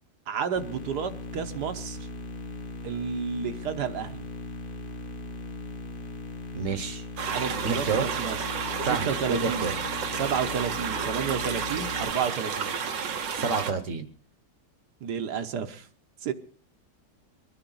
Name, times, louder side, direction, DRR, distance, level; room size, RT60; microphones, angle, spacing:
voice 1, 0.3-2.0 2.8-4.3 7.3-8.4 9.1-9.7 10.1-12.7 15.0-15.9 16.2-16.3, right 7 dB, 70° right, 8 dB, 1.4 m, -31 dB
sound 1, 0.6-12.1, left 2 dB, 35° left, 1.3 m, -39 dB
voice 2, 6.5-7.0 7.6-8.1 8.8-9.7 13.3-14.1, right 5 dB, 50° right, 10 dB, 1.2 m, -28 dB
sound 2, 7.2-13.7, right 6 dB, 90° right, 1.8 m, -31 dB
24.0 x 10.0 x 3.9 m, 0.43 s
omnidirectional pair, 1.9 m